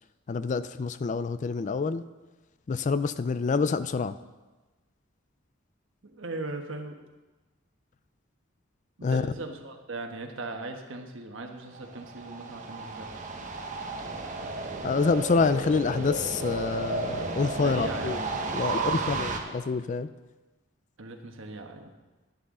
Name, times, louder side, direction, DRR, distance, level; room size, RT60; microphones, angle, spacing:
voice 1, 0.3-2.0 2.7-4.2 9.0-9.3 14.8-18.2 18.5-20.1, left 4 dB, 40° left, 14 dB, 0.3 m, -27 dB
voice 2, 6.0-7.0 9.0-13.2 17.6-18.3 18.7-19.3 21.0-21.9, right 2 dB, 70° right, 4 dB, 1.3 m, -38 dB
sound 1, 11.7-19.4, right 3 dB, 40° right, 1.1 m, -33 dB
11.0 x 11.0 x 3.8 m, 1.2 s
head